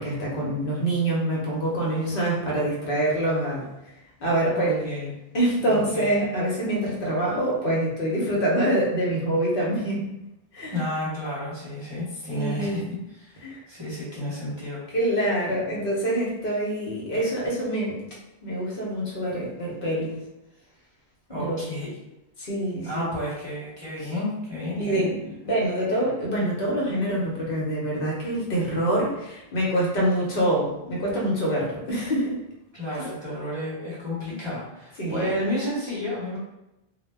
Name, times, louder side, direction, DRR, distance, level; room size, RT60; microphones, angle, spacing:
voice 1, 0.0-3.7 4.2-4.9 5.3-10.1 10.5-10.8 12.3-12.8 13.4-13.6 14.9-18.0 18.4-20.1 21.3-21.6 22.4-23.1 24.0-24.1 24.8-32.4 35.0-35.3, right 1 dB, 60° left, -4 dB, 0.8 m, -25 dB
voice 2, 4.5-5.1 5.6-6.1 10.7-14.9 21.3-21.9 22.8-25.1 32.7-36.4, left 1 dB, 30° right, -9 dB, 0.8 m, -31 dB
2.1 x 2.0 x 3.3 m, 0.91 s
omnidirectional pair, 1.1 m